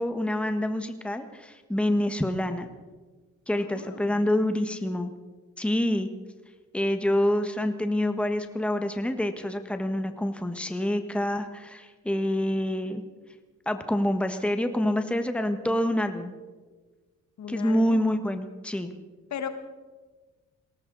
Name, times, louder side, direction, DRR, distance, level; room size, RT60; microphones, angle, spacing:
voice 1, 0.0-2.7 3.5-5.1 5.6-6.1 6.7-13.0 13.7-16.3 17.5-18.9, left 1 dB, 5° left, 7 dB, 1.4 m, -27 dB
voice 2, 3.6-4.1 17.4-18.0 19.3-19.5, left 8 dB, 65° left, 7 dB, 1.8 m, -36 dB
20.0 x 17.5 x 4.0 m, 1.3 s
cardioid pair, 90°, 30 cm